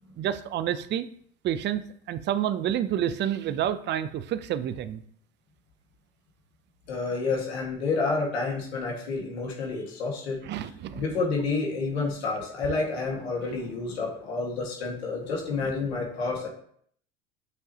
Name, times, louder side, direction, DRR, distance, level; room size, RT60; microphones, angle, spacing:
voice 1, 0.2-1.1 1.4-5.0 10.4-11.0, right 10 dB, 35° right, 13 dB, 0.5 m, -29 dB
voice 2, 6.9-10.4 10.9-16.5, left 3 dB, 90° left, -1 dB, 1.8 m, -29 dB
6.2 x 5.4 x 2.8 m, 0.63 s
hypercardioid pair, 85°, 31 cm